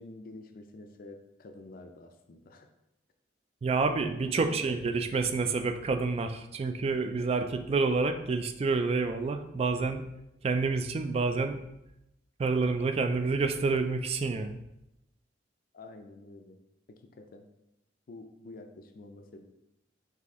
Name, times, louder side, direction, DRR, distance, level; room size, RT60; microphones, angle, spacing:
voice 1, 0.0-2.7 4.2-4.8 15.7-16.6 16.9-17.5 18.1-19.4, left 2 dB, 50° left, 6 dB, 0.4 m, -48 dB
voice 2, 3.6-10.1 10.4-11.6 12.4-14.6, right 4 dB, 35° right, 8 dB, 0.3 m, -28 dB
4.1 x 2.8 x 3.5 m, 0.87 s
head